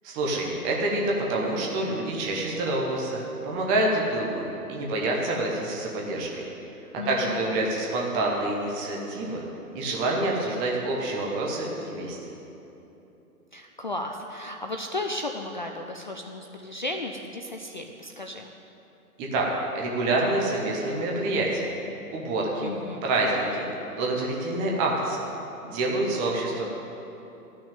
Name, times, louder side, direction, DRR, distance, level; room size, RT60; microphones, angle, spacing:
voice 1, 0.0-4.4 4.7-6.5 7.1-9.4 9.7-12.2 19.2-19.5 19.7-21.7 22.1-22.7 23.0-23.6 23.9-25.3 25.6-26.7, right 2 dB, 10° right, -2 dB, 0.6 m, -27 dB
voice 2, 7.0-7.6 13.5-18.5 22.6-23.1, left 2 dB, 35° left, 3 dB, 0.4 m, -34 dB
12.5 x 6.2 x 9.0 m, 3.0 s
figure-of-eight pair, 125°, 46 cm